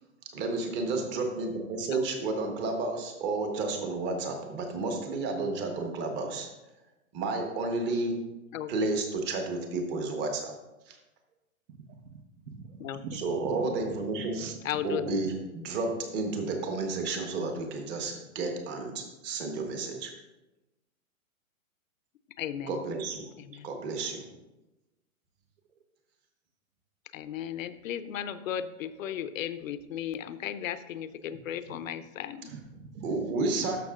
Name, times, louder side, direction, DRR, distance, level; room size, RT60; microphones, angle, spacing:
voice 1, 0.3-6.5 7.1-8.2 8.7-10.5 10.9-11.0 13.1-14.4 14.8-20.1 22.7-23.3 23.6-24.3 33.0-33.8, right 3 dB, 25° right, 4 dB, 1.2 m, -31 dB
voice 2, 8.5-8.9 12.8-13.0 14.6-15.1 22.4-22.8 23.4-23.7 27.1-32.5, left 10 dB, 70° left, 12 dB, 0.7 m, -35 dB
voice 3, 11.9-13.8 14.3-14.6 15.2-15.3 23.5-23.6 29.0-29.1 32.5-33.2 33.4-33.8, right 5 dB, 60° right, 7 dB, 1.1 m, -43 dB
12.5 x 6.0 x 2.5 m, 1.0 s
hypercardioid pair, 140°, 42 cm